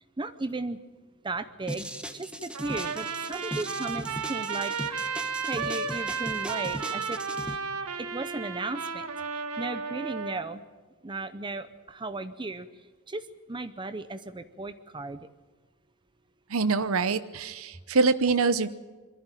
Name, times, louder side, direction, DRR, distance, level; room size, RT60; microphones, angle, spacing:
voice 1, 0.2-0.8 1.2-1.9 2.1-5.1 5.5-7.2 8.0-9.1 9.6-10.6 11.0-12.7 13.1-13.2 13.5-15.2, right 3 dB, 20° right, 11 dB, 0.7 m, -35 dB
sound 1, 1.7-7.6, equal, 5° right, 1.1 m, -38 dB
Trumpet, 2.5-10.4, right 5 dB, 90° right, 1.6 m, -33 dB
voice 2, 16.5-18.7, right 4 dB, 65° right, 13 dB, 0.8 m, -25 dB
22.5 x 14.5 x 9.0 m, 1.4 s
head